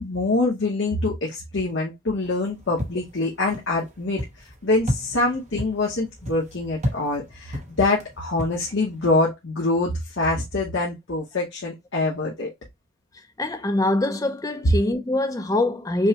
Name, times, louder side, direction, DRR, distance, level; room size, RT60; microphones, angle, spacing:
voice 1, 0.0-12.5 14.6-14.7, left 2 dB, 65° left, 1.1 m, -25 dB
sound 1, 2.2-9.0, equal, 35° right, 0.9 m, -34 dB
voice 2, 13.4-16.1, left 1 dB, 15° left, 0.5 m, -23 dB
5.4 x 2.2 x 2.9 m
head